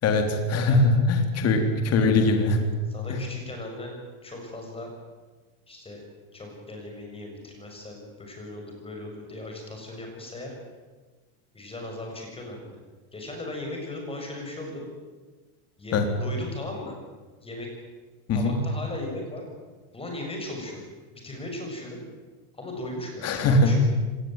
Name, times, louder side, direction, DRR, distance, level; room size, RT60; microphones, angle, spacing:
voice 1, 0.0-2.7 3.1-3.2 15.9-16.1 18.3-18.5 23.2-23.7, left 2 dB, 30° left, 5 dB, 3.8 m, -21 dB
voice 2, 2.9-3.9 4.2-4.9 5.7-6.0 6.3-10.5 11.5-12.7 13.1-14.9 15.8-16.9 17.4-17.7 18.3-19.4 19.9-20.8 21.1-22.0 22.5-23.8, left 1 dB, 10° left, 1 dB, 7.1 m, -37 dB
25.0 x 20.0 x 9.1 m, 1.3 s
supercardioid pair, 155°, 47 cm